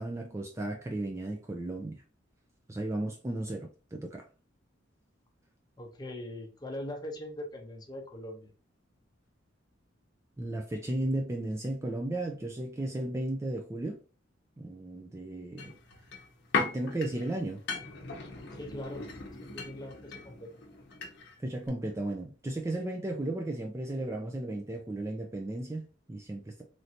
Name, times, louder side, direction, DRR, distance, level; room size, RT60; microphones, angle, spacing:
voice 1, 0.0-2.0 2.7-4.2 10.4-14.0 14.6-15.7 16.6-17.6 21.4-26.6, right 1 dB, 15° right, 0.3 m, -35 dB
voice 2, 5.8-8.5 18.5-19.1 19.4-20.5, left 1 dB, 20° left, 0.6 m, -41 dB
sound 1, 15.6-21.4 21.7-21.8, left 4 dB, 60° left, 0.7 m, -38 dB
3.1 x 2.6 x 2.7 m
head